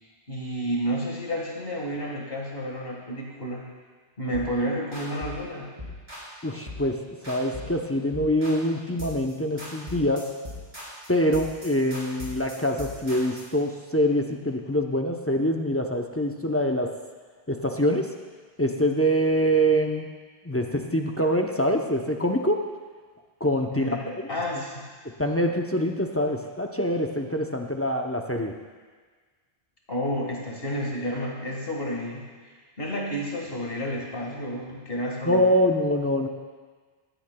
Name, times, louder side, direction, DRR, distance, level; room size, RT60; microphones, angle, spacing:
voice 1, 0.3-3.6 4.2-5.7 23.7-24.8 29.9-35.5, equal, 60° left, -2 dB, 1.9 m, -31 dB
sound 1, 4.3-4.6 4.9-5.4 5.8-6.3 6.7-6.9 7.2-7.8 8.1-8.7 9.0-9.3 9.6-13.5, left 2 dB, 35° right, 3.8 m, -39 dB
voice 2, 6.4-7.0 7.3-10.3 11.1-16.9 17.5-18.1 18.6-20.1 20.4-22.7 23.4-24.3 25.0-28.5 35.3-36.3, equal, 20° left, 2 dB, 0.5 m, -25 dB
16.0 x 12.0 x 2.2 m, 1.5 s
omnidirectional pair, 1.1 m